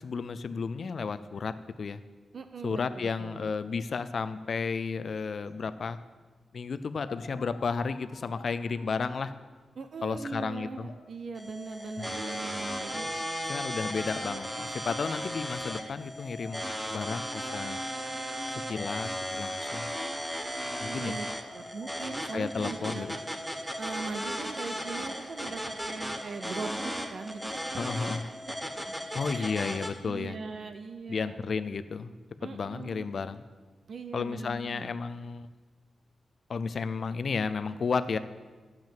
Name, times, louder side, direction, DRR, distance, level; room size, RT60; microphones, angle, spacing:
voice 1, 0.0-2.0 2.6-6.0 6.5-9.3 10.0-10.9 12.0-12.2 13.4-17.8 18.7-19.9 20.8-21.2 22.3-23.2 27.8-28.2 29.1-30.4 31.1-32.1 32.4-33.4 34.1-35.5 36.5-38.2, left 5 dB, 50° left, 13 dB, 0.4 m, -33 dB
voice 2, 2.3-3.5 9.8-13.1 20.9-21.3 21.5-23.2 23.8-27.5 28.0-28.1 29.3-29.5 30.0-31.4 32.4-33.1 33.9-34.9, right 4 dB, 55° right, 8 dB, 0.6 m, -40 dB
sound 1, 6.4-6.5 7.0-9.9 10.2-11.6 11.9-19.3 19.9-22.5, left 4 dB, 85° left, 1.2 m, -53 dB
sound 2, 11.4-29.9, equal, 5° right, 0.9 m, -36 dB
10.5 x 7.4 x 7.5 m, 1.4 s
wide cardioid pair, 155°, 0 cm